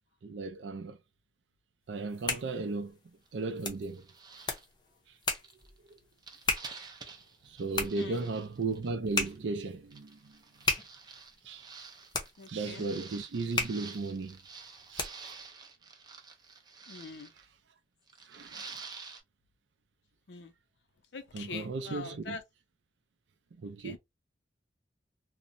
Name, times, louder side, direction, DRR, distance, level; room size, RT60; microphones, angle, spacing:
voice 1, 0.2-1.0 1.9-3.0 3.3-4.1 5.1-5.2 5.9-6.0 7.4-10.4 11.4-11.7 12.5-14.4 14.9-15.3 18.2-18.8 21.3-22.4 23.6-24.0, right 3 dB, 80° right, 0.5 m, -36 dB
sound 1, 1.9-15.4, left 3 dB, 25° left, 0.6 m, -38 dB
sound 2, 3.3-3.4 3.7-4.6 5.2-9.4 9.9-17.4 18.1-19.2, right 4 dB, 25° right, 0.5 m, -49 dB
voice 2, 8.0-8.3 12.4-12.9 16.9-17.3 20.3-20.5 21.1-22.4 23.8-24.0, left 4 dB, 70° left, 0.5 m, -43 dB
2.9 x 2.1 x 2.5 m
head